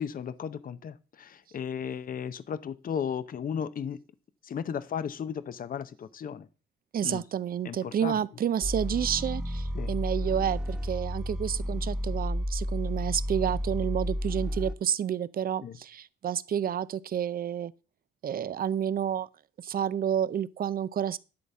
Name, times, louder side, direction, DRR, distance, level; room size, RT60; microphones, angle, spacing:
voice 1, 0.0-4.0 4.4-6.5 7.0-7.2 7.6-8.2 9.7-9.9 15.6-15.8, left 7 dB, 45° left, 0.7 m, -35 dB
voice 2, 6.9-17.7 18.2-19.3 19.6-21.2, right 9 dB, 50° right, 0.6 m, -30 dB
sound 1, 8.6-14.7, equal, 5° right, 1.1 m, -31 dB
11.5 x 4.1 x 7.1 m
cardioid pair, 90°, 20 cm